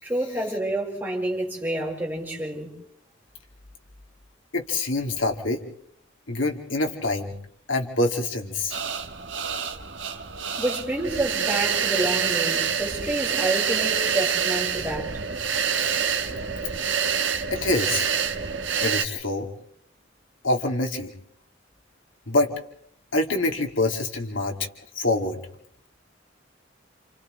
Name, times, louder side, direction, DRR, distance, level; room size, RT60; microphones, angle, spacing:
voice 1, 0.0-2.7 10.6-15.2, right 1 dB, 10° right, 4.9 m, -28 dB
voice 2, 4.5-5.7 6.3-7.3 7.7-8.8 15.7-16.0 17.5-18.1 18.8-19.5 20.4-21.1 22.3-22.5 23.1-24.6 25.0-25.4, left 2 dB, 90° left, 2.5 m, -25 dB
sound 1, 8.7-19.0, right 7 dB, 75° right, 1.2 m, -26 dB
29.5 x 29.0 x 3.2 m
head